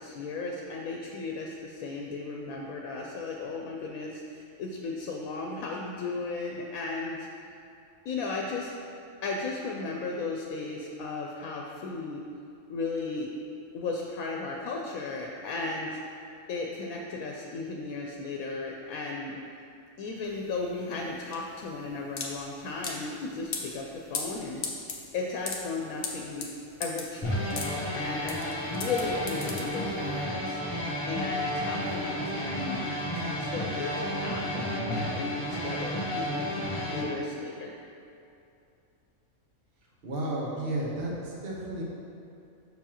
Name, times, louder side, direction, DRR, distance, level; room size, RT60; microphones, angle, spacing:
voice 1, 0.0-7.2 8.0-8.7 9.2-12.2 12.7-13.3 13.7-16.0 16.5-19.4 20.0-24.7 25.1-26.5 26.8-27.6 27.9-28.4 28.7-30.6 31.1-36.5 36.9-37.7, left 3 dB, 90° left, -1 dB, 1.1 m, -35 dB
sound 1, 20.2-30.2, left 4 dB, 50° left, 0.8 m, -38 dB
sound 2, 27.2-37.0, equal, 25° left, 1.1 m, -32 dB
voice 2, 40.0-41.8, right 1 dB, 45° right, -4 dB, 1.2 m, -32 dB
6.9 x 5.9 x 2.9 m, 2.7 s
omnidirectional pair, 1.4 m